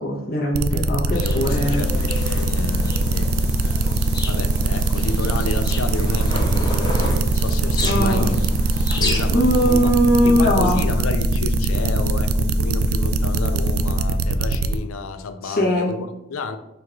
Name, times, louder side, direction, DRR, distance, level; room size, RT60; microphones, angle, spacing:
voice 1, 0.0-1.8 7.8-8.4 9.3-10.8 15.4-15.9, equal, 45° left, -2 dB, 1.0 m, -20 dB
sound 1, 0.5-14.8, right 3 dB, 75° right, 0.3 m, -21 dB
sound 2, 1.1-9.8, left 2 dB, 20° left, 0.7 m, -31 dB
voice 2, 1.2-3.9 4.3-8.3 8.9-9.9 10.2-16.6, left 4 dB, 85° left, 9 dB, 0.4 m, -31 dB
sound 3, 1.4-14.4, left 3 dB, 35° right, 0.7 m, -33 dB
4.5 x 2.5 x 4.5 m, 0.91 s
head